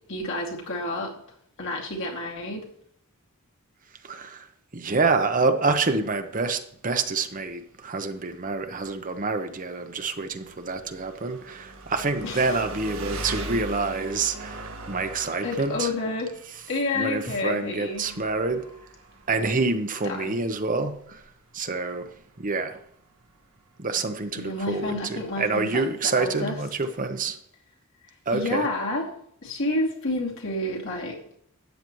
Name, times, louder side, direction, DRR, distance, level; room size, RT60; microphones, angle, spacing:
voice 1, 0.1-1.1 1.6-2.7 12.2-12.6 13.4-13.5 15.4-16.3 16.7-18.2 20.0-20.5 24.3-26.6 28.3-29.1 29.4-31.2, left 2 dB, 60° left, 2.6 m, -30 dB
voice 2, 4.0-4.4 4.7-15.9 16.9-18.6 19.3-21.2 21.5-22.1 22.4-22.8 23.8-27.4 28.3-28.7, right 3 dB, 40° right, 0.9 m, -27 dB
Engine, 6.3-25.7, right 1 dB, 75° right, 1.8 m, -42 dB
13.0 x 9.0 x 3.1 m
head